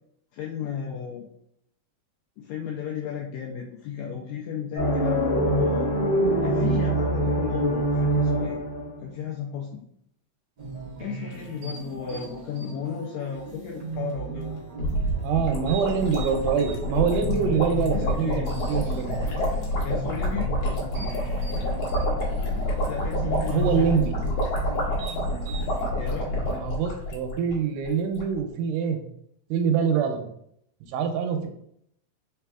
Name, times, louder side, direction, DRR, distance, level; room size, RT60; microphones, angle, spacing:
voice 1, 0.3-1.3 2.4-5.9 6.4-8.6 9.0-9.9 11.0-14.6 17.9-18.5 19.8-21.2 22.9-23.8 25.9-26.3, left 7 dB, 85° left, 0 dB, 1.6 m, -34 dB
sound 1, 4.8-9.1, right 1 dB, 45° left, 1.6 m, -24 dB
sound 2, 10.6-25.9, right 3 dB, 65° right, 1.0 m, -38 dB
sound 3, 14.8-27.5 27.8-27.9 28.1-28.4, left 1 dB, 65° left, 1.7 m, -28 dB
voice 2, 15.2-19.2 23.5-24.2 26.3-29.0 29.5-30.2 30.9-31.5, right 6 dB, 85° right, 5 dB, 2.2 m, -25 dB
4.8 x 3.4 x 2.3 m, 0.71 s
omnidirectional pair, 3.7 m